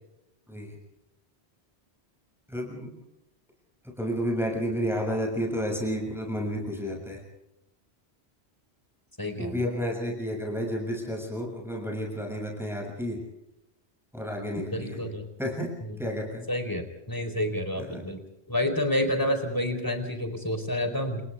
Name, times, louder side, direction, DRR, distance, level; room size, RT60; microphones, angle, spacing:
voice 1, 2.5-3.0 4.0-7.2 9.4-13.2 14.1-15.0 15.4-15.7 16.0-16.5 17.8-18.0, equal, ahead, -1 dB, 7.0 m, -31 dB
voice 2, 9.2-9.6 14.7-15.2 15.8-16.0 16.5-18.2 18.5-21.2, left 1 dB, 20° left, 7 dB, 4.3 m, -29 dB
30.0 x 29.0 x 3.6 m, 0.86 s
omnidirectional pair, 1.1 m